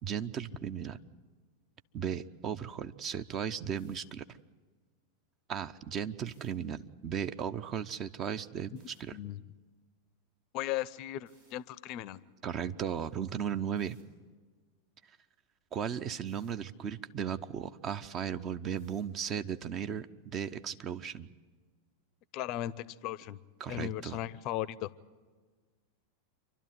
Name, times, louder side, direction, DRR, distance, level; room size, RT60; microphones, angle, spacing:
voice 1, 0.0-1.0 1.9-4.2 5.5-9.2 12.4-14.0 15.7-21.3 23.6-24.2, right 8 dB, 30° right, 12 dB, 0.6 m, -36 dB
sound 1, 3.8-4.0 6.2-6.5 8.7-9.0 11.3-11.5 13.8-14.0 16.3-16.5 18.8-19.1, right 2 dB, 75° right, 6.8 m, -67 dB
voice 2, 10.5-12.2 22.3-22.7 23.0-23.4 23.7-24.9, left 13 dB, 40° left, 21 dB, 0.6 m, -36 dB
27.5 x 12.0 x 9.5 m, 1.4 s
figure-of-eight pair, 90°, 0 cm